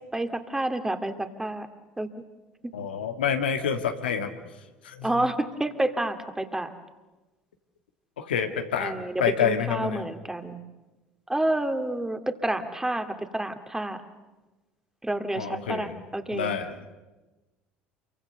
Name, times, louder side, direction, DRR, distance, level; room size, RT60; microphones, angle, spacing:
voice 1, 0.1-1.7 2.0-2.1 5.0-6.7 8.8-10.6 11.3-14.0 15.0-16.5, right 1 dB, 10° right, 7 dB, 2.3 m, -29 dB
voice 2, 2.7-4.3 4.8-5.3 8.2-10.0 15.4-15.9 16.3-16.8, left 7 dB, 85° left, 6 dB, 1.6 m, -28 dB
27.5 x 23.5 x 6.9 m, 1.1 s
hypercardioid pair, 65°, 5 cm